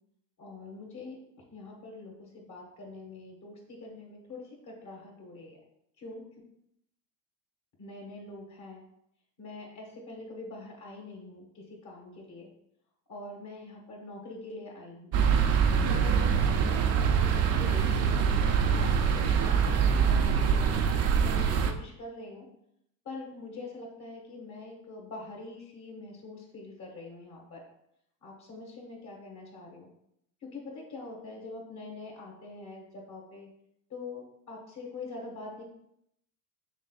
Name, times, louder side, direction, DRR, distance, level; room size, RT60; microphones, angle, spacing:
voice 1, 0.4-1.2 1.5-5.6 6.0-6.2 7.8-8.8 9.4-12.5 13.1-15.1 15.9-16.3 16.6-20.8 21.2-22.5 23.0-27.6 28.2-29.9 30.4-33.5 33.9-35.6, left 3 dB, 45° left, -1 dB, 1.6 m, -44 dB
sound 1, 15.1-21.7, right 7 dB, 40° right, 0.5 m, -24 dB
6.4 x 3.4 x 2.3 m, 0.77 s
supercardioid pair, 95°, 41 cm